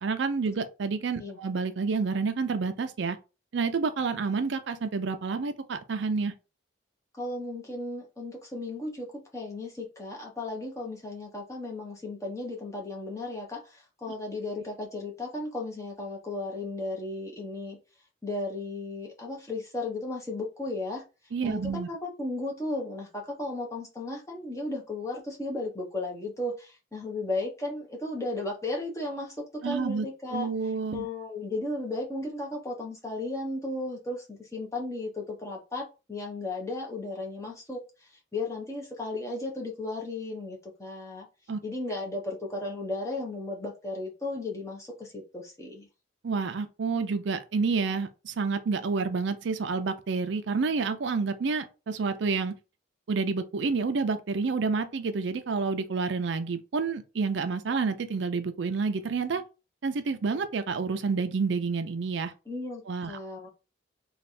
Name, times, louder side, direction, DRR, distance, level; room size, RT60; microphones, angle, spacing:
voice 1, 0.0-3.2 3.5-6.3 21.3-21.9 29.6-30.1 30.3-31.1 41.5-41.6 46.2-52.5 53.1-59.4 59.8-62.3 62.9-63.1, right 4 dB, 70° right, 0.4 m, -29 dB
voice 2, 7.1-17.8 18.2-21.0 21.4-30.5 30.9-41.3 41.6-45.9 62.5-63.5, left 2 dB, 15° left, 0.9 m, -35 dB
3.3 x 2.3 x 4.1 m
head